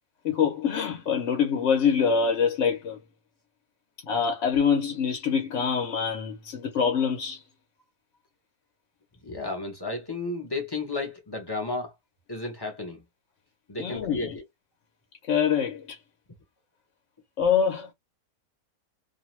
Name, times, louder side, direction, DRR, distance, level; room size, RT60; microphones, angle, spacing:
voice 1, 0.2-3.0 4.1-7.4 13.8-14.4 15.3-16.0 17.4-17.9, left 6 dB, 60° left, 0.9 m, -25 dB
voice 2, 9.2-11.9 12.3-13.0 13.7-14.4, left 2 dB, 35° left, 0.4 m, -33 dB
2.5 x 2.2 x 3.0 m
omnidirectional pair, 1.6 m